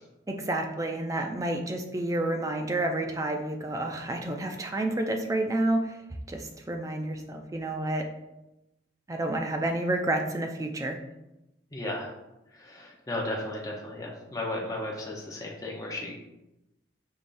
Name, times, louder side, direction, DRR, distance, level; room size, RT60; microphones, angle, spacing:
voice 1, 0.3-6.0 6.3-8.1 9.1-11.0, right 1 dB, 15° right, 4 dB, 0.3 m, -29 dB
voice 2, 11.7-12.1 12.6-16.2, left 1 dB, 20° left, -2 dB, 0.7 m, -34 dB
5.3 x 3.5 x 2.5 m, 0.95 s
head